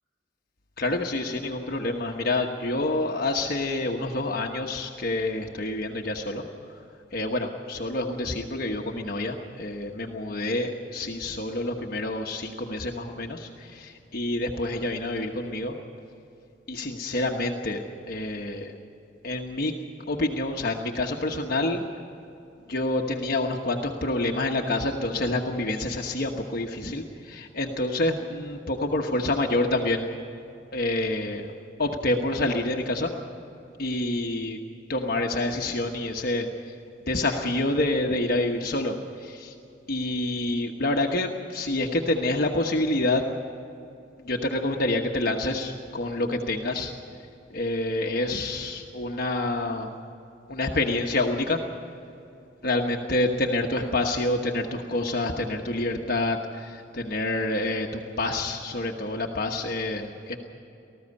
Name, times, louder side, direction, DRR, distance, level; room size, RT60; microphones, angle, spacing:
voice 1, 0.8-6.4 6.7-6.8 7.1-15.8 16.7-18.7 19.2-19.7 20.1-21.8 22.7-30.1 30.7-31.5 31.8-33.1 33.8-34.6 34.9-36.5 37.1-39.5 39.9-43.2 44.2-46.9 47.5-49.9 50.5-51.6 52.6-60.4, left 2 dB, 55° left, 1 dB, 1.2 m, -27 dB
19.5 x 14.5 x 9.7 m, 2.8 s
head